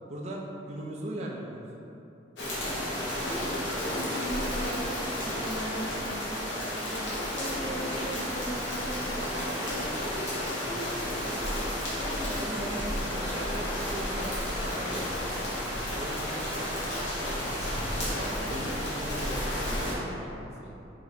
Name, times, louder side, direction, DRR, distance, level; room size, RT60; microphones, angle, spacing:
voice 1, 0.1-1.5 10.8-11.1 12.1-12.7 13.2-15.4 15.9-17.4 17.8-20.7, right 1 dB, 35° right, -2 dB, 0.4 m, -39 dB
sound 1, 2.4-20.0, equal, 80° left, 0.9 m, -32 dB
voice 2, 3.2-10.3 10.6-11.5 12.0-12.8 13.0-13.1 18.3-18.6, equal, 40° left, -2 dB, 0.5 m, -39 dB
4.8 x 2.5 x 3.1 m, 2.8 s
head